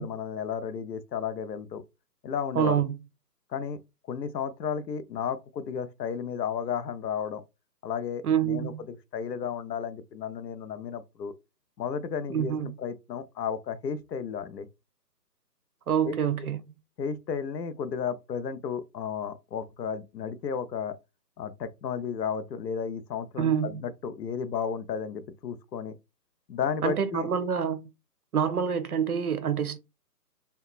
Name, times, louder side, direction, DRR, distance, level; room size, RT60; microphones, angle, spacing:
voice 1, 0.0-1.8 2.2-2.8 3.5-3.8 4.1-7.4 7.8-11.3 11.8-14.7 16.0-16.2 17.0-21.0 21.4-25.9 26.5-27.3, left 7 dB, 75° left, 0.6 m, -33 dB
voice 2, 2.6-2.9 8.2-8.8 12.3-12.7 15.9-16.6 23.4-23.8 26.8-27.9 28.3-29.8, right 8 dB, 60° right, 0.5 m, -26 dB
2.8 x 2.2 x 2.3 m
hypercardioid pair, 165°, 50 cm